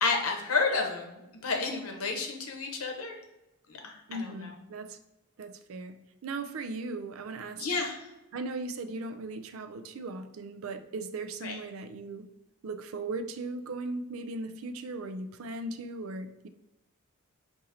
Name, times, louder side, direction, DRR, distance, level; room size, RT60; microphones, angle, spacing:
voice 1, 0.0-3.1 3.7-4.5 7.6-8.0 11.4-11.6, left 4 dB, 80° left, 3 dB, 0.8 m, -31 dB
voice 2, 4.1-5.0 5.4-7.7 8.3-12.3 12.6-16.5, right 3 dB, 70° right, 8 dB, 0.4 m, -38 dB
3.9 x 2.7 x 4.2 m, 0.98 s
head